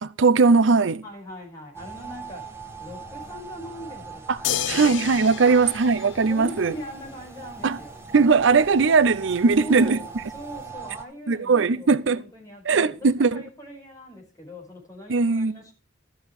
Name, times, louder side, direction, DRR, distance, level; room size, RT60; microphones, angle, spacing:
voice 1, 0.0-1.0 4.3-4.4 4.7-6.7 7.6-7.8 8.1-10.0 11.3-12.2 12.7-13.4 15.1-15.5, right 4 dB, 70° right, 0.6 m, -19 dB
voice 2, 1.0-2.4 2.8-4.2 4.7-5.2 5.4-5.8 6.3-8.0 9.6-15.7, equal, 20° left, 5.4 m, -41 dB
sound 1, 1.7-11.0, right 4 dB, 15° right, 1.5 m, -41 dB
sound 2, 4.4-6.9 8.6-8.7, left 9 dB, 65° left, 0.6 m, -31 dB
13.5 x 7.0 x 4.7 m
head